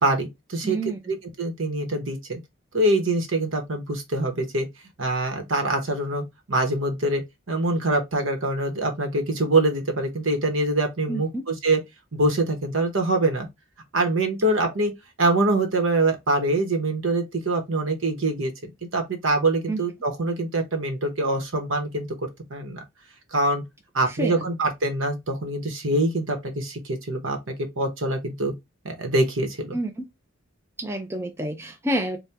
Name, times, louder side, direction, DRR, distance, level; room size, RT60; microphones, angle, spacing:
voice 1, 0.0-0.8 1.1-2.4 2.7-4.7 5.0-11.8 12.1-13.5 13.9-14.9 15.2-22.8 23.3-23.6 23.9-28.5 28.8-29.8, right 2 dB, 70° right, 1.0 m, -24 dB
voice 2, 0.6-1.0 11.1-11.4 19.7-19.8 24.1-24.4 29.7-30.1 30.8-32.2, right 1 dB, 10° right, 0.4 m, -28 dB
4.2 x 2.2 x 3.3 m
head